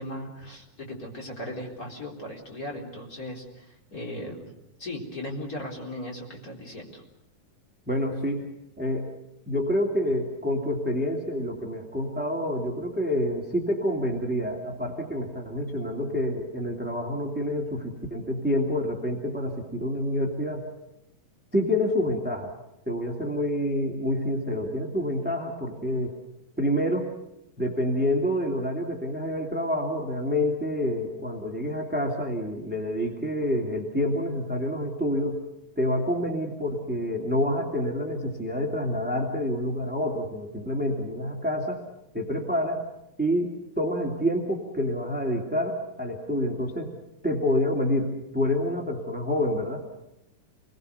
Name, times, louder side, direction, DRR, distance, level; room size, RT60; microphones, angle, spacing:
voice 1, 0.0-4.5 4.8-7.0, left 1 dB, 25° left, -1 dB, 4.2 m, -37 dB
voice 2, 7.9-9.1 9.5-20.6 21.5-22.5 22.9-26.2 26.6-27.1 27.6-35.4 35.8-41.8 42.1-42.8 43.2-46.9 47.2-49.8, left 1 dB, 5° right, 1 dB, 2.1 m, -27 dB
28.5 x 21.5 x 6.9 m, 0.85 s
omnidirectional pair, 3.9 m